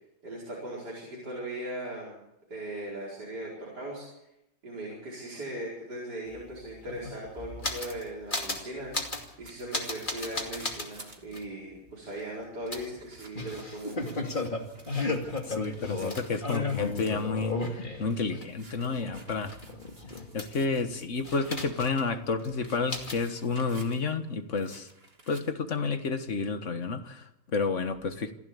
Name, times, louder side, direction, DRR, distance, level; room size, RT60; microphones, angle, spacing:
voice 1, 0.2-2.2 2.5-4.1 4.6-8.9 9.4-14.1, right 1 dB, 50° right, -4 dB, 5.4 m, -39 dB
sound 1, 6.3-6.4 6.6-8.0 8.3-8.6 8.9-9.3 9.7-10.9 11.3-11.4 12.7-18.4 18.8-20.8 21.2-22.1 22.4-22.5 22.9-23.2, left 3 dB, 25° left, 2.5 m, -34 dB
sound 2, 8.9-11.3 11.7-11.8 12.0-12.4 12.9-17.6 18.0-21.9 22.2-24.2 24.6-25.4, right 2 dB, 30° right, 2.6 m, -54 dB
voice 2, 15.5-19.6 20.3-24.9 25.3-28.3, left 4 dB, 40° left, 8 dB, 1.5 m, -30 dB
27.5 x 11.5 x 8.6 m, 0.88 s
omnidirectional pair, 2.3 m